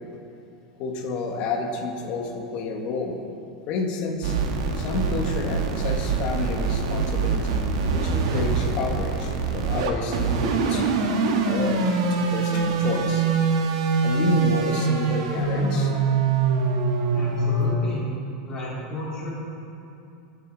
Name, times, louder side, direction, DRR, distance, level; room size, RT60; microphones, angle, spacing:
voice 1, 0.8-3.2 3.7-4.4 4.8-13.3 14.0-15.9, left 4 dB, 35° left, 1 dB, 1.8 m, -30 dB
sound 1, 4.2-17.8, right 4 dB, 75° right, 1.9 m, -24 dB
voice 2, 17.1-18.1 18.4-19.3, left 1 dB, 20° left, -7 dB, 4.4 m, -32 dB
23.5 x 9.5 x 4.8 m, 2.7 s
supercardioid pair, 180°, 3 cm